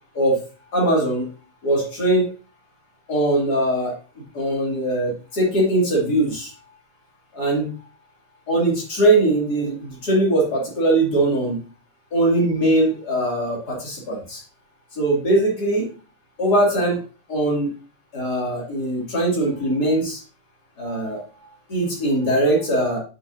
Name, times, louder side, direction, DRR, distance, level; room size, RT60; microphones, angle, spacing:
voice 1, 0.7-1.3 1.6-2.3 3.1-3.9 4.3-6.5 7.3-7.7 8.5-11.6 12.1-14.4 14.9-15.9 16.4-17.0 17.3-17.7 18.1-20.2 20.8-21.2 21.7-23.0, right 1 dB, 30° left, -3 dB, 2.0 m, -21 dB
7.9 x 6.2 x 2.7 m, 0.35 s
omnidirectional pair, 5.2 m